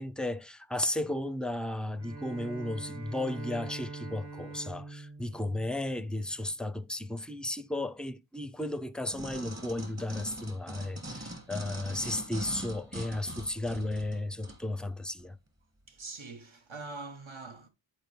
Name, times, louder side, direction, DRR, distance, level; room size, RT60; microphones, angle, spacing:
voice 1, 0.0-15.4, left 1 dB, ahead, 0.4 m, -34 dB
Bowed string instrument, 2.0-6.4, right 3 dB, 50° right, 2.9 m, -44 dB
sound 1, 9.1-14.6 15.2-15.3, equal, 35° right, 1.6 m, -42 dB
voice 2, 15.9-17.7, right 3 dB, 75° right, 1.2 m, -43 dB
10.5 x 4.4 x 3.1 m
wide cardioid pair, 60°, 48 cm